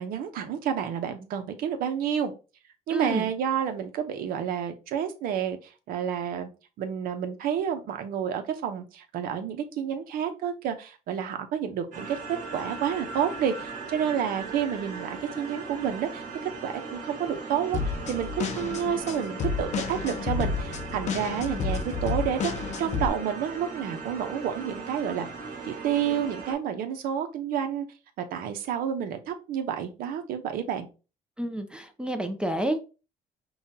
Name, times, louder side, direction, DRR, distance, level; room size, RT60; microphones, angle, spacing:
voice 1, 0.0-2.3 2.9-6.5 6.8-12.2 12.5-22.5 22.8-25.3 25.7-27.9 28.2-30.9, right 8 dB, 80° right, 7 dB, 0.7 m, -30 dB
voice 2, 2.9-3.3 31.4-32.8, right 1 dB, 5° right, 6 dB, 0.5 m, -29 dB
sound 1, 11.9-26.5, right 4 dB, 60° right, 1.3 m, -38 dB
sound 2, 17.7-23.1, left 5 dB, 50° left, 0.5 m, -31 dB
5.5 x 2.3 x 2.7 m, 0.32 s
cardioid pair, 120°, 15 cm